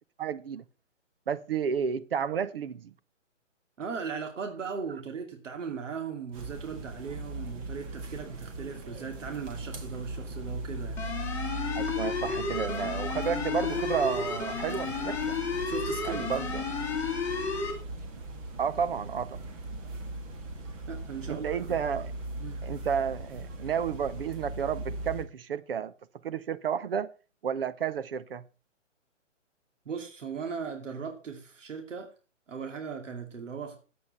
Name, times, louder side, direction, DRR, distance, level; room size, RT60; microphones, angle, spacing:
voice 1, 0.2-0.6 1.3-2.9 11.7-15.4 16.0-16.6 18.6-19.4 21.3-22.1 22.6-25.9 26.2-27.1 27.4-28.4, right 7 dB, 50° right, 0.7 m, -31 dB
voice 2, 3.8-11.2 15.7-16.3 20.9-21.8 22.4-22.7 29.9-32.1 32.5-33.8, right 6 dB, 75° right, 2.6 m, -38 dB
sound 1, 6.3-25.2, right 1 dB, 25° right, 1.7 m, -39 dB
sound 2, 11.0-17.7, left 5 dB, 5° left, 2.1 m, -32 dB
9.5 x 8.3 x 5.4 m
hypercardioid pair, 150°, 37 cm